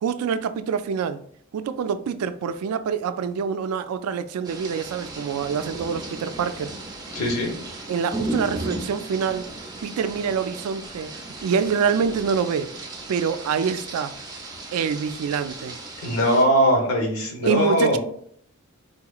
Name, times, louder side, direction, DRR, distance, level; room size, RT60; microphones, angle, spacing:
voice 1, 0.0-1.2 1.5-6.7 7.9-9.5 9.8-11.1 11.4-12.7 13.1-14.2 14.7-15.8 17.4-18.0, right 6 dB, 80° right, 0.3 m, -26 dB
sound 1, 4.4-16.4, right 2 dB, 20° right, 0.5 m, -36 dB
voice 2, 7.1-7.5 16.0-18.0, equal, 75° left, 1.0 m, -20 dB
4.0 x 2.9 x 2.3 m
head